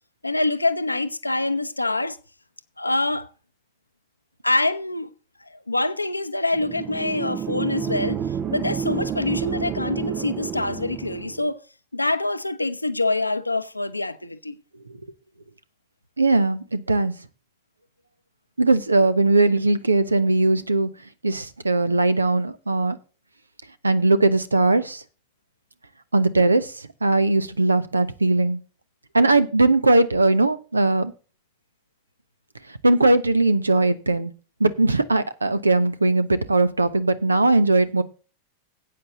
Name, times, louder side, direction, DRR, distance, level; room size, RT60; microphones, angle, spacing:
voice 1, 0.2-2.2 2.8-3.3 4.4-5.1 5.4-11.6 11.9-14.6, left 2 dB, 85° left, 0.8 m, -25 dB
sound 1, 6.5-11.5, right 8 dB, 30° right, 0.6 m, -29 dB
voice 2, 16.2-17.1 18.6-20.9 21.2-23.0 23.8-25.0 26.1-28.6 29.1-31.1 32.8-34.3 34.6-38.0, right 2 dB, 80° right, 0.8 m, -19 dB
12.0 x 8.7 x 3.9 m
figure-of-eight pair, 90°, 0 cm